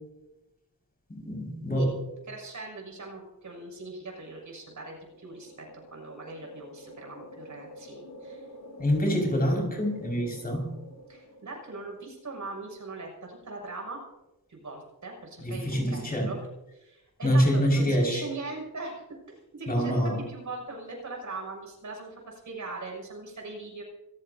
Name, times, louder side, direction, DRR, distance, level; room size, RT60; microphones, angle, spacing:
voice 1, 1.1-1.9 8.8-10.7 15.4-16.3 17.2-18.2 19.7-20.2, equal, 25° left, 0 dB, 5.8 m, -26 dB
voice 2, 2.3-8.5 11.1-14.0 14.5-16.4 16.7-20.0 20.3-23.8, right 3 dB, 50° right, 0 dB, 7.0 m, -41 dB
sound 1, 4.8-12.4, equal, 85° left, 7.7 m, -48 dB
26.0 x 16.5 x 2.8 m, 0.96 s
wide cardioid pair, 160°, 38 cm